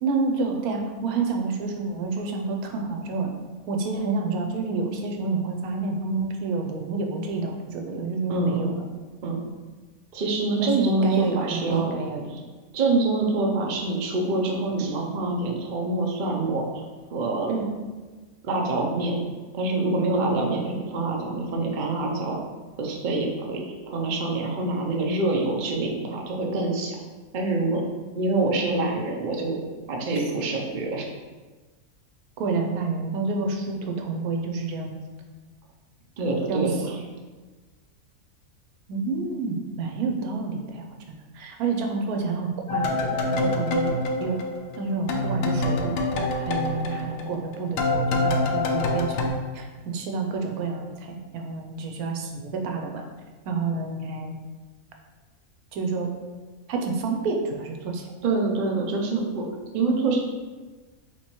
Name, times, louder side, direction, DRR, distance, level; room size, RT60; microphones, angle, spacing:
voice 1, 0.0-3.3 3.7-8.7 10.6-12.2 17.5-17.7 32.4-35.0 36.5-36.6 38.9-44.4 44.8-49.7 49.9-53.0 53.5-54.3 55.7-56.1 56.7-58.1, right 4 dB, 90° right, 3 dB, 1.1 m, -29 dB
voice 2, 8.3-8.7 9.2-9.4 10.1-12.0 12.3-12.4 12.7-16.8 17.1-17.6 18.4-19.2 19.5-22.4 22.8-27.0 27.3-27.8 28.1-29.6 29.9-31.1 36.2-37.0 58.2-59.4 59.7-60.2, right 3 dB, 50° right, -1 dB, 0.6 m, -26 dB
sound 1, 42.7-44.8 45.1-49.3, left 2 dB, 65° left, 0.6 m, -26 dB
3.6 x 3.0 x 4.3 m, 1.3 s
omnidirectional pair, 1.5 m